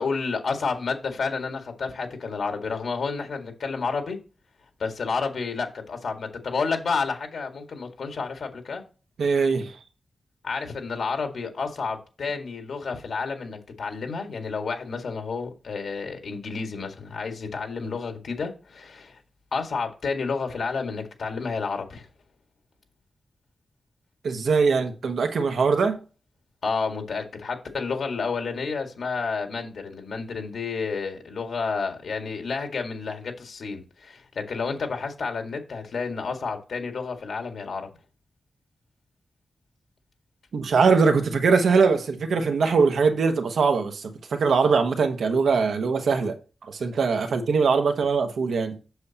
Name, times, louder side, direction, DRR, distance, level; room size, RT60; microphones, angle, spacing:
voice 1, 0.0-4.2 4.8-8.8 10.4-19.2 19.5-22.1 26.6-37.9, left 4 dB, 75° left, 1.9 m, -30 dB
voice 2, 9.2-9.8 24.2-26.0 40.5-46.4 46.6-48.8, right 5 dB, 85° right, 1.2 m, -22 dB
7.9 x 6.8 x 2.9 m
wide cardioid pair, 115°, 0 cm